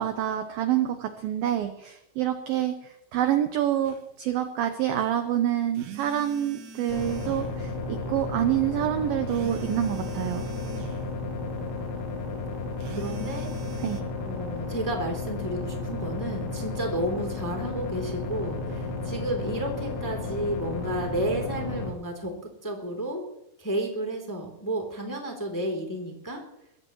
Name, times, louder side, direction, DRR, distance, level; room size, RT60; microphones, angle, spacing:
voice 1, 0.0-10.5 13.8-14.0, right 11 dB, 80° right, 7 dB, 2.1 m, -27 dB
sound 1, 3.8-4.0 5.8-7.5 9.3-11.0 12.8-14.0, right 5 dB, 65° right, 2.2 m, -43 dB
sound 2, 6.9-21.9, left 3 dB, 75° left, 4.6 m, -33 dB
voice 2, 12.9-13.5 14.2-23.2 23.6-26.4, right 1 dB, 5° left, 1 dB, 1.9 m, -32 dB
23.0 x 16.5 x 3.1 m, 0.78 s
omnidirectional pair, 5.5 m